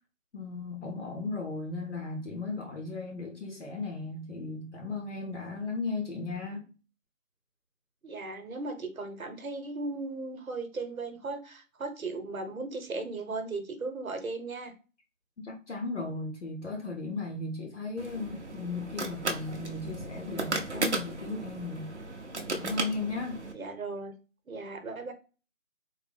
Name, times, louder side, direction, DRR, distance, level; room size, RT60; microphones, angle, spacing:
voice 1, 0.3-6.7 15.4-21.9 22.6-23.4, left 3 dB, 60° left, 0.8 m, -36 dB
voice 2, 8.0-14.7 23.5-24.1 24.5-25.1, right 3 dB, 90° right, 1.0 m, -37 dB
sound 1, 18.0-23.5, right 2 dB, 55° right, 0.7 m, -35 dB
3.9 x 2.1 x 3.3 m
figure-of-eight pair, 175°, 41 cm